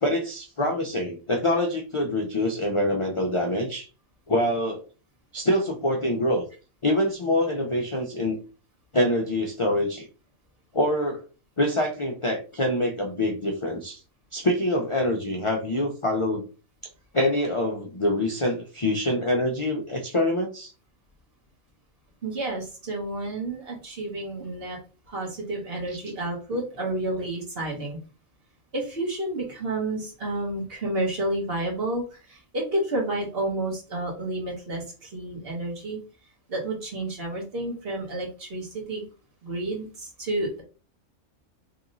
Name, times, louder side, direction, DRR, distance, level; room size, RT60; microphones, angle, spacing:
voice 1, 0.0-3.9 4.3-4.8 5.3-6.5 6.8-8.4 8.9-10.1 10.7-11.2 11.6-14.0 14.3-16.4 17.1-20.7, left 1 dB, 50° left, 1 dB, 0.3 m, -25 dB
voice 2, 22.2-24.8 25.1-28.0 28.7-36.0 36.5-39.1 39.4-40.6, right 2 dB, 45° right, -1 dB, 1.5 m, -30 dB
3.1 x 2.9 x 3.9 m, 0.35 s
omnidirectional pair, 1.4 m